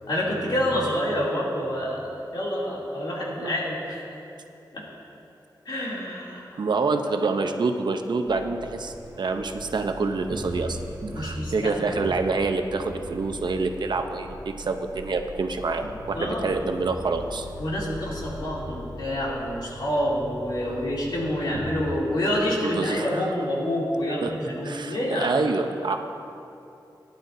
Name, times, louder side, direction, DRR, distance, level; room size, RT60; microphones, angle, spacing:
voice 1, 0.0-2.0 2.3-4.0 4.7-4.8 5.6-6.6 11.1-12.1 16.1-16.5 17.6-25.3, equal, 65° left, -5 dB, 2.8 m, -27 dB
voice 2, 6.6-10.8 11.1-17.5 20.6-20.8 22.6-23.3 24.2-24.3 24.6-26.0, right 3 dB, 70° right, 6 dB, 0.7 m, -27 dB
sound 1, 8.3-21.9, equal, 40° right, 1.4 m, -39 dB
18.0 x 11.0 x 2.7 m, 2.7 s
wide cardioid pair, 120°, 8 cm